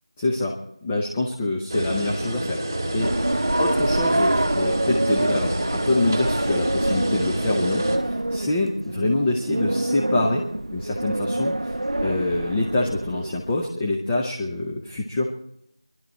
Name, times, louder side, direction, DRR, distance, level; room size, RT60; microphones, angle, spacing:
voice 1, 0.2-0.5 0.8-2.6 2.9-10.4 10.7-11.8 12.0-15.3, left 2 dB, 10° left, -1 dB, 0.8 m, -25 dB
sound 1, 1.7-8.0, right 1 dB, 25° right, 2.4 m, -28 dB
sound 2, 3.0-13.7, right 1 dB, 65° right, 0.6 m, -26 dB
22.5 x 12.5 x 4.4 m, 0.77 s
figure-of-eight pair, 175°, 3 cm